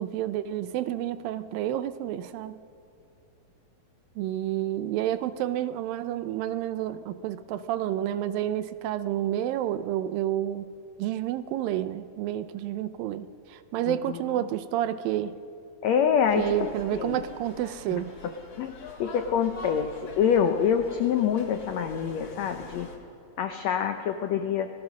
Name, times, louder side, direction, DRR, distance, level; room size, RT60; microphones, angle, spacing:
voice 1, 0.0-2.6 4.2-10.7 11.0-15.4 16.4-18.2, right 12 dB, 80° right, 13 dB, 2.3 m, -30 dB
voice 2, 13.9-14.2 15.8-17.2 17.9-18.0 18.6-22.9 23.4-24.7, left 7 dB, 80° left, 7 dB, 1.5 m, -26 dB
sound 1, 16.2-23.0, left 3 dB, 45° left, 3.3 m, -45 dB
26.0 x 18.0 x 6.3 m, 2.6 s
omnidirectional pair, 4.2 m